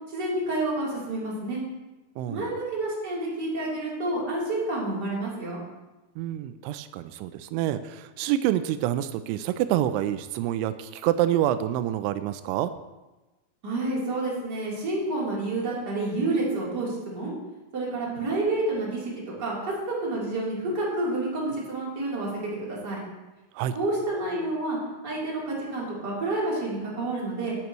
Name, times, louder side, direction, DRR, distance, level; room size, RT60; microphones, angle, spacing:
voice 1, 0.1-1.6 2.3-5.6 13.6-17.3 17.7-19.7 20.0-23.0 23.7-24.8 25.0-27.6, right 2 dB, 25° right, -6 dB, 3.4 m, -29 dB
voice 2, 2.2-2.5 6.2-12.7 23.6-23.7, right 12 dB, 90° right, 11 dB, 3.0 m, -27 dB
17.0 x 9.4 x 3.1 m, 1.1 s
omnidirectional pair, 5.4 m